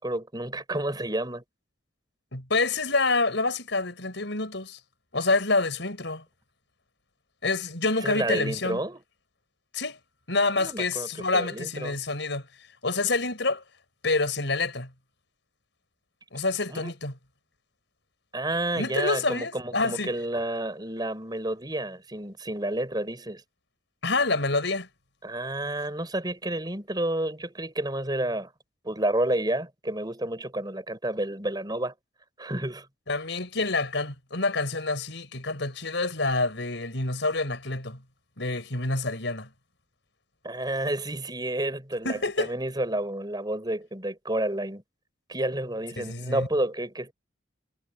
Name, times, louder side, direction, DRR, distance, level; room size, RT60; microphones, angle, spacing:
voice 1, 0.0-1.4 8.0-9.0 10.6-12.0 16.7-16.9 18.3-23.4 25.2-28.5 28.8-31.9 32.4-32.9 40.4-44.8 45.3-47.1, right 1 dB, 20° right, 6.0 m, -30 dB
voice 2, 2.3-4.8 5.1-6.2 7.4-8.8 9.7-10.0 10.3-12.5 12.8-13.6 14.0-14.9 16.3-17.2 18.7-20.1 24.0-24.9 33.1-38.0 38.4-39.5 42.0-42.5 46.0-46.5, left 3 dB, 70° left, 5.4 m, -27 dB
head